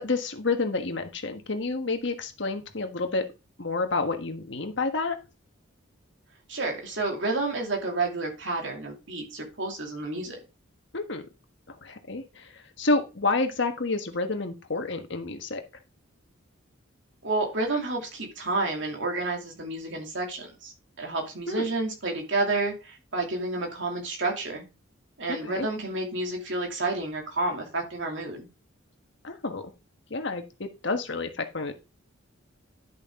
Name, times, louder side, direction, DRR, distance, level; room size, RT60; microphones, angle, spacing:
voice 1, 0.0-3.3 3.6-5.2 10.9-11.2 11.7-15.6 21.5-21.7 25.4-25.7 29.2-29.6 30.1-31.7, left 3 dB, 60° left, 6 dB, 1.4 m, -29 dB
voice 2, 6.5-10.4 17.2-20.7 21.0-24.6 25.2-28.5, right 2 dB, 65° right, 1 dB, 2.7 m, -30 dB
11.0 x 6.4 x 3.7 m, 0.29 s
head